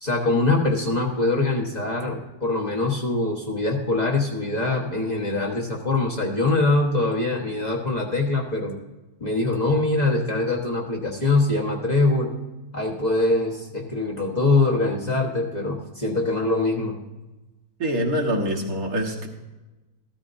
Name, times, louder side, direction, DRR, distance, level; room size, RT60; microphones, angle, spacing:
voice 1, 0.0-8.7 9.2-12.3 12.7-17.0, left 2 dB, 30° left, -2 dB, 1.2 m, -23 dB
voice 2, 17.8-19.3, equal, 70° right, 0 dB, 1.9 m, -25 dB
14.5 x 13.0 x 2.6 m, 1.1 s
omnidirectional pair, 1.6 m